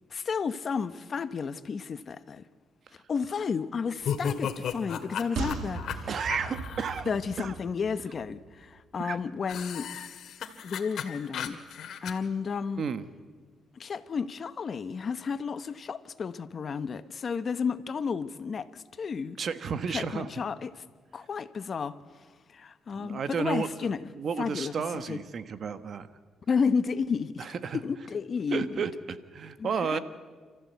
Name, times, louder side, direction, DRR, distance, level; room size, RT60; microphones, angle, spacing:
voice 1, 0.1-2.5 3.1-6.1 7.1-9.9 10.6-12.8 13.7-19.4 19.9-20.8 21.1-21.9 22.5-24.0 24.4-24.7 25.1-25.2 26.5-27.5 27.7-28.9 29.6-30.0, left 5 dB, 45° left, 1.0 m, -32 dB
sound 1, 4.0-7.0 9.5-12.1, left 8 dB, 70° left, 2.0 m, -35 dB
sound 2, 5.4-8.8 9.1-9.2, right 5 dB, 75° right, 2.0 m, -38 dB
voice 2, 6.1-7.1 7.4-7.5 9.0-9.2 12.8-13.0 19.4-20.3 23.0-26.1 27.4-27.8 28.5-30.0, right 6 dB, 55° right, 1.3 m, -32 dB
29.5 x 14.0 x 8.2 m
cardioid pair, 90°, 0 cm